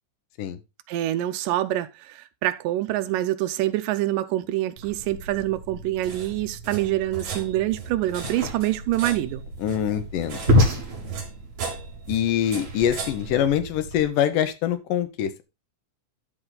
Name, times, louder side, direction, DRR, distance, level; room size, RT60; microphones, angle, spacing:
voice 1, 0.9-9.4, right 14 dB, 80° right, 2.2 m, -26 dB
sound 1, 4.8-14.1, right 4 dB, 50° right, 3.4 m, -37 dB
sound 2, 8.2-13.3, left 1 dB, 25° right, 1.7 m, -26 dB
voice 2, 9.6-10.5 12.1-15.4, left 10 dB, 75° left, 2.4 m, -24 dB
12.5 x 4.8 x 3.8 m
omnidirectional pair, 4.1 m